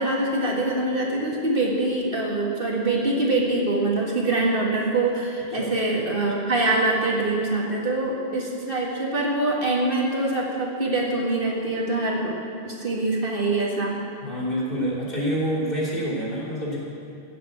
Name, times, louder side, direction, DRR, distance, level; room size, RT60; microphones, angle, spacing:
voice 1, 0.0-12.4 12.6-14.0, right 2 dB, 55° right, -2 dB, 2.1 m, -24 dB
voice 2, 14.2-16.8, equal, 55° left, -6 dB, 3.7 m, -27 dB
15.0 x 7.6 x 8.0 m, 2.4 s
omnidirectional pair, 1.1 m